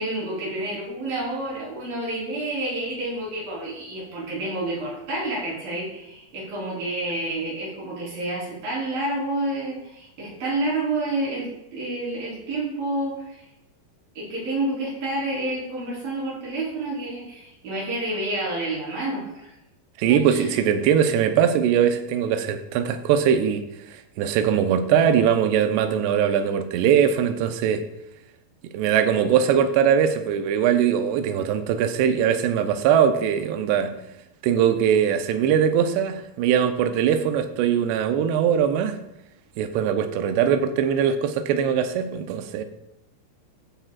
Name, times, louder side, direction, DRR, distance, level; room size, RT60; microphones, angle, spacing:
voice 1, 0.0-13.4 14.2-19.5 20.1-20.6, right 2 dB, 55° right, -6 dB, 5.5 m, -29 dB
voice 2, 20.0-27.8 28.7-33.9 34.4-39.0 39.6-42.6, right 8 dB, 80° right, 7 dB, 2.7 m, -21 dB
15.0 x 9.1 x 2.4 m, 0.90 s
omnidirectional pair, 5.1 m